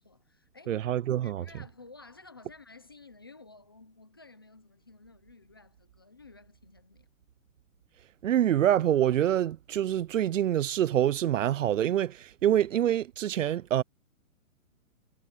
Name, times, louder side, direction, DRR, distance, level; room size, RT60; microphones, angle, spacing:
voice 1, 0.0-0.9 1.2-7.1, left 3 dB, 20° left, 0.5 m, -53 dB
voice 2, 0.7-1.4 8.2-13.8, right 11 dB, 65° right, 0.6 m, -26 dB
hypercardioid pair, 165°, 42 cm